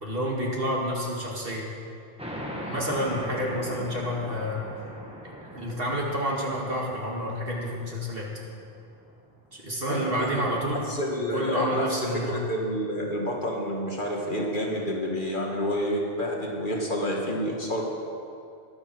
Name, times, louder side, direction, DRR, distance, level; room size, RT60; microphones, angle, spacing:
voice 1, 0.0-1.7 2.6-4.6 5.5-8.3 9.5-10.9 11.3-12.4, equal, 55° right, -3 dB, 2.4 m, -29 dB
sound 1, 2.2-9.3, equal, 5° right, 1.6 m, -40 dB
voice 2, 9.9-10.4 10.7-17.8, equal, 45° left, -1 dB, 2.1 m, -29 dB
21.5 x 7.4 x 6.3 m, 2.5 s
omnidirectional pair, 1.2 m